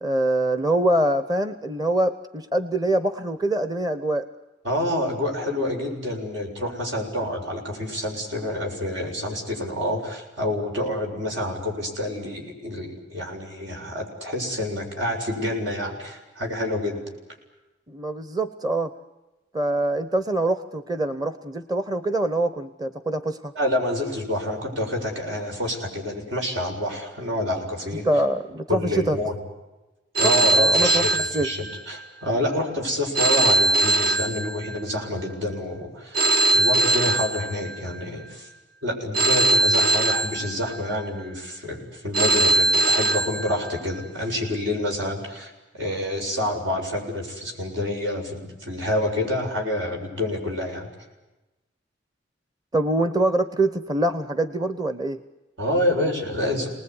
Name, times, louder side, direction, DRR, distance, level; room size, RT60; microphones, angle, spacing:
voice 1, 0.0-4.3 17.9-18.9 19.5-23.5 28.0-29.2 30.2-31.5 52.7-55.2, right 1 dB, 20° right, 11 dB, 1.0 m, -24 dB
voice 2, 4.6-17.0 23.6-28.0 28.7-29.4 30.2-31.1 31.4-36.2 36.5-38.5 38.8-50.9 55.6-56.7, left 1 dB, 75° right, 2 dB, 7.2 m, -28 dB
Telephone, 30.1-32.0 33.1-35.0 36.1-38.0 39.1-41.0 42.1-44.0, right 2 dB, 55° right, 1.3 m, -21 dB
28.0 x 20.0 x 9.8 m, 1.1 s
head